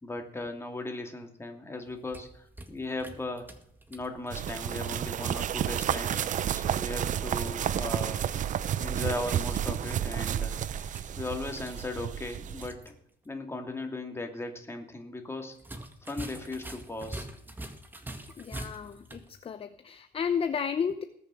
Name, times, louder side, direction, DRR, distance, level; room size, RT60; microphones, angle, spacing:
voice 1, 0.0-3.5 3.9-6.2 6.5-8.2 8.8-10.6 11.2-12.9 13.2-15.6 16.0-17.3, left 2 dB, 15° left, 4 dB, 2.6 m, -37 dB
sound 1, 1.9-6.6 9.2-12.9 13.2-13.3 15.5-19.3, right 1 dB, 10° right, 1.8 m, -45 dB
sound 2, 4.3-12.7, right 10 dB, 50° right, 0.6 m, -31 dB
voice 2, 18.4-21.0, left 7 dB, 35° left, 10 dB, 0.8 m, -32 dB
19.5 x 6.9 x 6.5 m, 0.70 s
cardioid pair, 110°, 17 cm